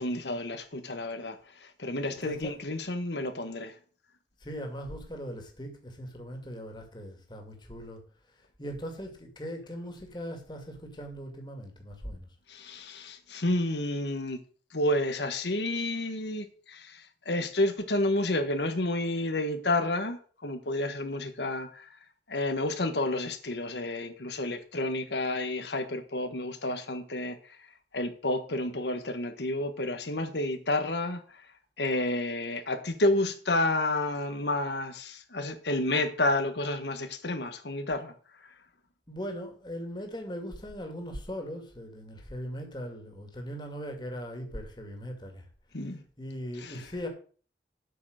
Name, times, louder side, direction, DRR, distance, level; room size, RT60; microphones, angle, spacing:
voice 1, 0.0-1.3 1.8-3.7 12.5-14.4 14.7-21.9 22.3-27.4 27.9-31.2 31.8-38.1 45.7-46.0 46.6-46.8, left 2 dB, 80° left, 1.5 m, -30 dB
voice 2, 2.0-2.6 4.4-8.0 8.6-12.3 39.1-45.5 45.8-47.1, equal, 25° left, 2.3 m, -39 dB
8.5 x 6.7 x 7.9 m
head